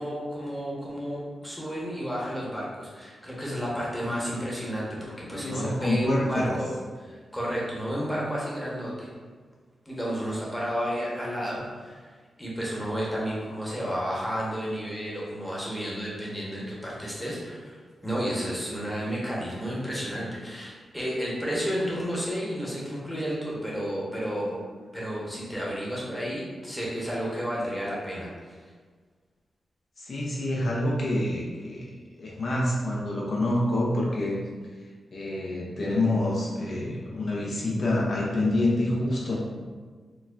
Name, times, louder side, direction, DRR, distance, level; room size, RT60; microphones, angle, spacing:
voice 1, 0.0-4.9 5.2-6.7 7.0-9.1 9.9-12.1 12.4-24.6 24.9-28.3, equal, 5° left, -6 dB, 1.0 m, -31 dB
voice 2, 5.0-6.5 13.6-13.7 30.0-31.9 32.2-34.4 35.1-39.4, left 1 dB, 60° left, -4 dB, 0.6 m, -27 dB
4.0 x 2.2 x 2.4 m, 1.5 s
cardioid pair, 80°, 0 cm